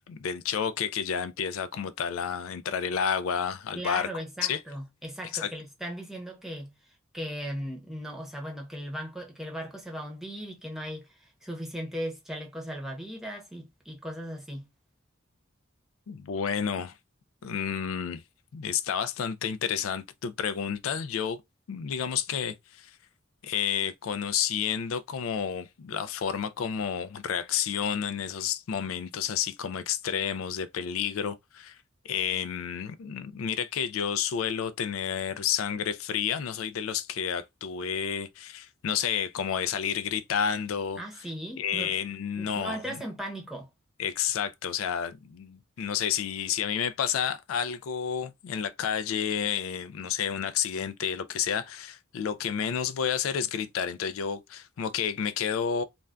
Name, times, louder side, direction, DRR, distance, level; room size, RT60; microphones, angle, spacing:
voice 1, 0.1-4.1 4.4-4.6 5.3-5.5 16.1-16.9 17.4-18.2 18.5-21.4 21.7-23.0 23.4-31.8 32.0-41.0 41.6-42.8 44.0-55.8, left 8 dB, 90° left, 0.4 m, -30 dB
voice 2, 3.7-6.7 7.1-14.7 41.0-42.0 42.4-43.7, equal, ahead, 0.8 m, -37 dB
2.5 x 2.2 x 3.3 m
head